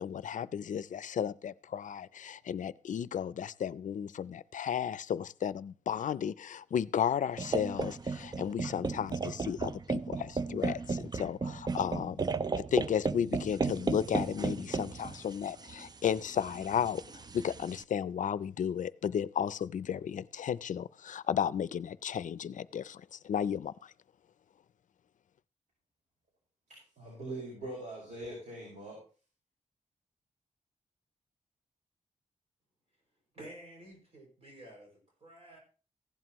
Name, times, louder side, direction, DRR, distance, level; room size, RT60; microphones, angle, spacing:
voice 1, 0.0-12.2 12.6-17.0 17.3-23.9, left 8 dB, 80° left, 19 dB, 0.4 m, -34 dB
sound 1, 7.4-17.8, right 4 dB, 30° right, 0.5 m, -35 dB
voice 2, 26.7-29.0, right 2 dB, 70° right, -3 dB, 5.1 m, -42 dB
voice 3, 33.3-35.6, right 1 dB, 50° right, 0 dB, 6.1 m, -51 dB
16.0 x 11.0 x 3.0 m, 0.37 s
wide cardioid pair, 150°, 13 cm